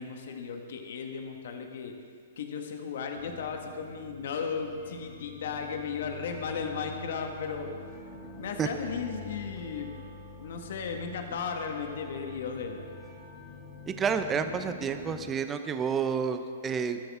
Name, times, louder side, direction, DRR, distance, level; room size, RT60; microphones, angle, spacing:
voice 1, 0.0-1.9 2.4-7.7 8.3-10.0 10.4-12.8, left 5 dB, 65° left, 4 dB, 1.8 m, -35 dB
sound 1, 3.1-15.2, left 4 dB, 15° left, 2.7 m, -46 dB
voice 2, 13.9-17.0, right 6 dB, 20° right, 8 dB, 0.9 m, -30 dB
22.5 x 13.0 x 3.7 m, 2.1 s
hypercardioid pair, 135°, 0 cm